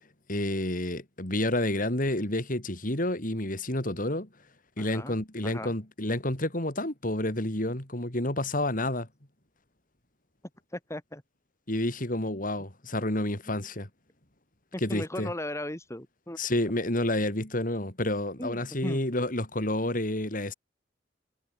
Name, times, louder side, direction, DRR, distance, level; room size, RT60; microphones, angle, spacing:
voice 1, 0.3-4.3 4.8-9.1 11.7-13.9 14.8-15.3 16.4-20.5, left 1 dB, 50° left, 4.7 m, -29 dB
voice 2, 4.8-5.1 5.4-5.7 10.7-11.2 13.5-13.6 14.7-16.4 18.4-19.0, left 1 dB, 15° left, 4.1 m, -37 dB
head